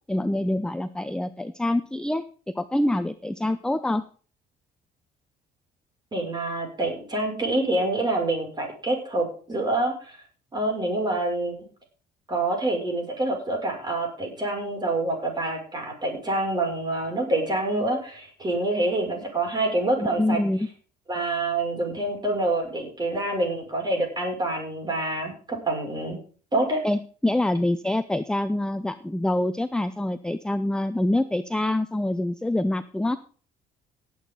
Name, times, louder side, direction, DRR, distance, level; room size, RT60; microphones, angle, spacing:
voice 1, 0.1-2.2 2.6-4.0 20.0-20.7 26.8-33.2, left 1 dB, 5° left, 11 dB, 0.6 m, -25 dB
voice 2, 6.1-10.2 10.5-11.5 12.3-20.4 21.1-26.2 26.5-26.8, right 2 dB, 25° right, 2 dB, 6.2 m, -26 dB
17.5 x 8.5 x 3.9 m, 0.40 s
cardioid pair, 110°, 17 cm